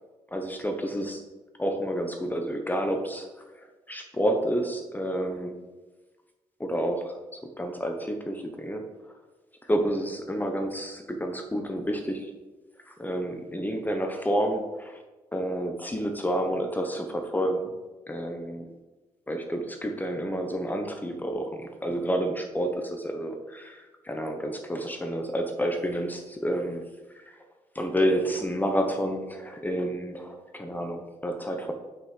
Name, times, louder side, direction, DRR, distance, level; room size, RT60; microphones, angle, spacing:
voice 1, 0.3-1.2 1.6-3.3 3.5-5.6 6.6-8.9 9.7-12.3 12.9-15.0 15.3-17.7 18.1-18.7 19.3-26.9 27.7-31.7, equal, 15° left, 4 dB, 1.0 m, -29 dB
5.8 x 5.4 x 5.8 m, 1.2 s
supercardioid pair, 65°, 13 cm